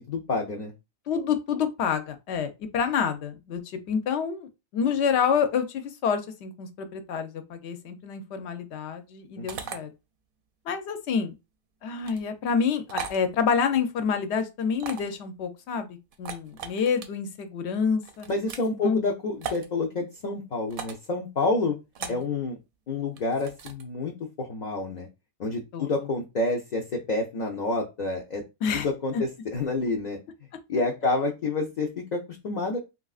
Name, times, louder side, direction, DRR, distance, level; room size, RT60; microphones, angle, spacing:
voice 1, 0.1-0.7 9.4-9.7 18.3-21.8 22.1-22.6 22.9-24.1 24.4-25.1 25.4-28.4 28.7-30.2 30.7-32.8, left 3 dB, 55° left, 0.5 m, -28 dB
voice 2, 1.1-3.6 3.9-9.9 10.7-11.3 11.8-18.3 18.8-19.0 22.0-22.2 25.7-25.9 28.6-28.9, left 6 dB, 75° left, 0.8 m, -28 dB
sound 1, 9.5-9.8 12.0-12.2 12.9-13.2 14.7-15.2 16.1-17.1 18.0-18.7 19.4-19.7 20.7-21.1 21.9-22.3 23.2-23.8, right 6 dB, 60° right, 0.6 m, -37 dB
3.6 x 2.4 x 2.3 m
omnidirectional pair, 1.2 m